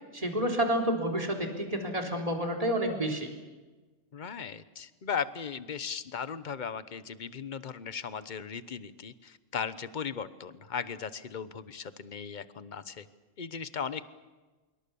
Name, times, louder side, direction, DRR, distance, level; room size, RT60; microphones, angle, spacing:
voice 1, 0.1-3.3, right 1 dB, 30° right, 2 dB, 3.8 m, -29 dB
voice 2, 4.1-13.1 13.4-14.1, left 6 dB, 40° left, 14 dB, 1.1 m, -37 dB
25.5 x 23.5 x 7.1 m, 1.2 s
omnidirectional pair, 1.3 m